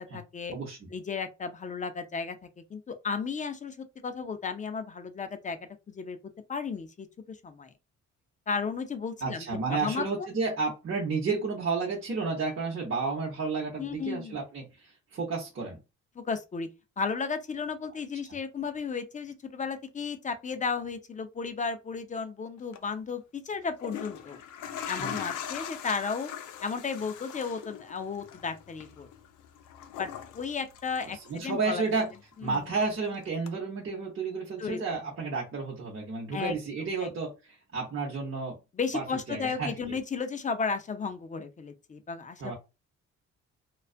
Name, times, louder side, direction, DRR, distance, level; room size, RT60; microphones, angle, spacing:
voice 1, 0.1-0.5 0.9-2.4 2.7-5.6 5.9-6.2 6.5-7.7 8.5-10.3 13.8-14.4 16.2-16.7 17.0-24.4 24.9-26.3 26.6-29.1 30.0-31.8 32.4-32.7 34.6-34.8 36.3-36.5 37.0-37.1 38.7-42.5, left 5 dB, 25° left, 0.4 m, -34 dB
voice 2, 9.2-15.8 25.0-25.2 31.3-32.1 32.4-38.6 38.9-39.7 42.4-42.5, right 4 dB, 45° right, 0.8 m, -31 dB
sound 1, 22.6-22.8 23.6-31.7 32.0-33.0 33.5-33.6, left 9 dB, 85° left, 0.5 m, -41 dB
2.3 x 2.2 x 2.4 m
cardioid pair, 90°, 30 cm